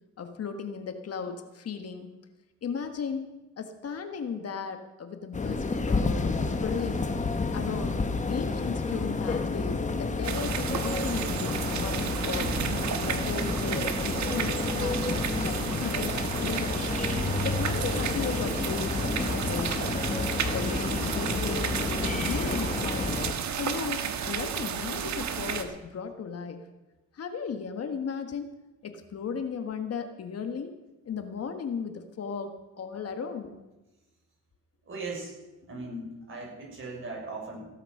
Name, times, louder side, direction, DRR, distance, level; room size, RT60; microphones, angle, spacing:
voice 1, 0.2-2.1 2.6-7.1 7.5-8.0 8.3-12.6 13.0-16.9 17.4-20.1 20.5-23.3 23.6-26.6 27.1-28.5 28.8-30.8 31.0-33.5, left 6 dB, 55° left, 6 dB, 1.6 m, -36 dB
sound 1, 5.3-23.3, left 3 dB, 25° left, 1.4 m, -30 dB
sound 2, 10.2-25.6, right 8 dB, 70° right, 1.5 m, -32 dB
voice 2, 34.8-35.3 35.7-37.6, right 2 dB, 45° right, -1 dB, 6.6 m, -38 dB
16.5 x 8.9 x 6.6 m, 1.1 s
cardioid pair, 90°, 30 cm